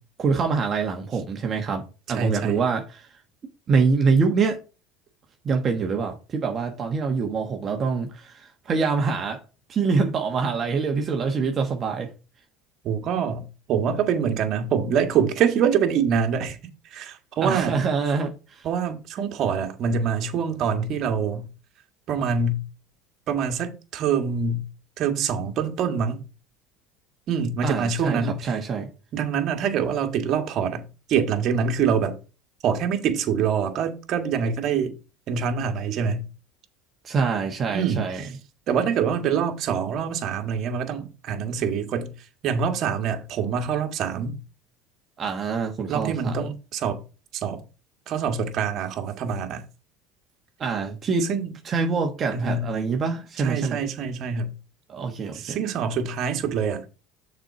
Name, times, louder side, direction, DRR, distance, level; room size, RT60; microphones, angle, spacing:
voice 1, 0.2-1.8 2.1-3.1 3.7-4.6 5.4-9.4 9.7-12.1 17.4-18.7 27.6-28.9 37.0-38.2 45.2-46.5 50.6-51.3 51.6-53.8 54.9-55.6, right 5 dB, 35° right, 1.4 m, -25 dB
voice 2, 2.1-2.6 12.8-16.6 16.9-17.8 18.6-21.5 22.1-22.6 23.3-24.6 25.0-26.2 27.3-28.5 29.1-30.8 31.1-32.1 32.6-35.0 35.3-36.2 37.7-38.3 38.7-42.1 42.4-44.4 45.9-47.0 47.3-47.6 48.1-49.6 51.3-51.5 52.3-52.7 53.4-54.5 55.3-56.8, right 6 dB, 50° right, 1.8 m, -25 dB
6.8 x 4.5 x 5.8 m
supercardioid pair, 100°, 0 cm